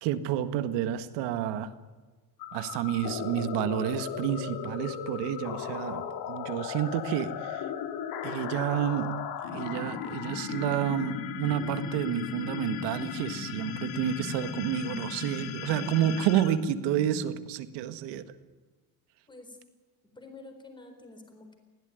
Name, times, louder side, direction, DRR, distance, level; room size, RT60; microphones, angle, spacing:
voice 1, 0.0-1.7 2.5-7.7 8.2-9.1 9.5-18.2, right 10 dB, 70° right, 11 dB, 1.8 m, -30 dB
sound 1, 2.4-17.5, left 7 dB, 55° left, 2.6 m, -36 dB
voice 2, 19.3-19.6 20.1-21.5, left 2 dB, 10° left, 5 dB, 4.2 m, -48 dB
21.0 x 16.5 x 9.4 m, 1.3 s
cardioid pair, 160°, 43 cm